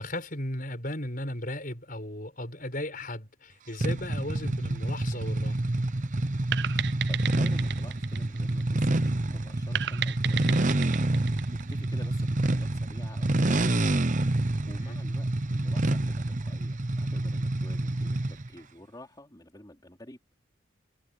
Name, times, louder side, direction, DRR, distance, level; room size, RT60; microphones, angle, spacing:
voice 1, 0.0-5.6 14.9-15.0, left 1 dB, 45° left, 5.8 m, -36 dB
sound 1, 3.8-18.5, right 2 dB, 40° right, 0.8 m, -28 dB
sound 2, 6.5-9.1 9.7-12.3, right 11 dB, 55° right, 0.4 m, -34 dB
voice 2, 7.1-10.9 11.2-14.0 14.4-20.2, left 1 dB, 20° left, 3.5 m, -50 dB
head